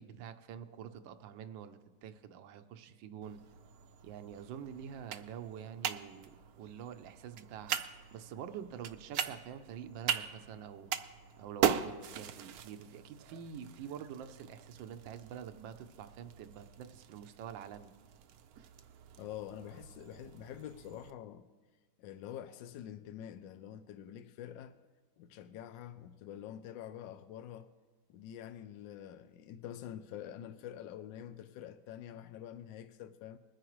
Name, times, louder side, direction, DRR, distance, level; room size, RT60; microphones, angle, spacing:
voice 1, 0.0-3.4 4.0-7.8 8.1-10.9 11.4-17.9, right 8 dB, 85° right, 1.4 m, -47 dB
sound 1, 3.2-21.1, right 9 dB, 70° right, 0.9 m, -40 dB
voice 2, 19.2-21.5 22.0-24.7 25.2-27.7 28.1-33.4, left 10 dB, 80° left, 1.3 m, -46 dB
21.5 x 9.7 x 3.1 m
omnidirectional pair, 2.0 m